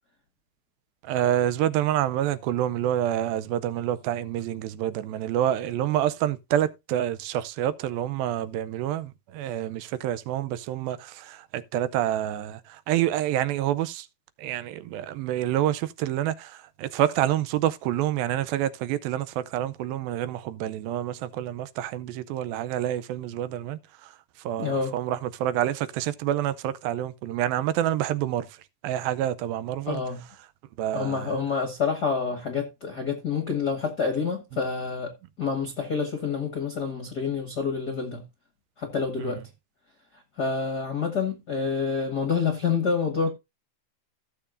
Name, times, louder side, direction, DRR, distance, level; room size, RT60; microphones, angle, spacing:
voice 1, 1.0-14.1 14.4-24.1 24.4-28.5 28.8-30.0 30.8-31.4 39.2-39.4, right 12 dB, 85° right, 2.4 m, -27 dB
voice 2, 24.6-24.9 29.9-30.2 30.9-38.2 38.8-39.4 40.4-43.3, left 5 dB, 55° left, 1.1 m, -28 dB
16.0 x 7.0 x 2.5 m
omnidirectional pair, 4.2 m